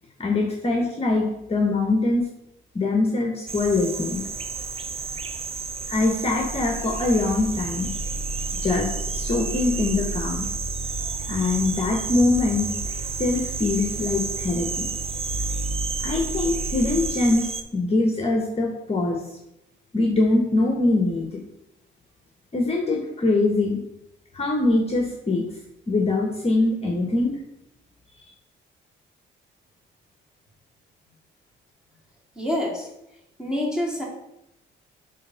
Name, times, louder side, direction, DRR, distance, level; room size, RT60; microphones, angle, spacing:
voice 1, 0.2-2.3 2.7-4.2 5.9-7.9 8.6-10.5 11.3-12.7 13.2-14.9 16.0-19.4 19.9-21.4 22.5-23.8 24.3-25.4 25.9-27.4, left 2 dB, 30° left, 1 dB, 1.1 m, -23 dB
sound 1, 3.5-17.6, right 4 dB, 30° right, 0.6 m, -32 dB
sound 2, 6.4-17.2, right 2 dB, 85° right, 1.9 m, -33 dB
voice 2, 32.4-32.9 33.4-34.0, left 1 dB, 5° right, -3 dB, 2.4 m, -26 dB
6.5 x 3.4 x 5.7 m, 0.84 s
cardioid pair, 90°, 20 cm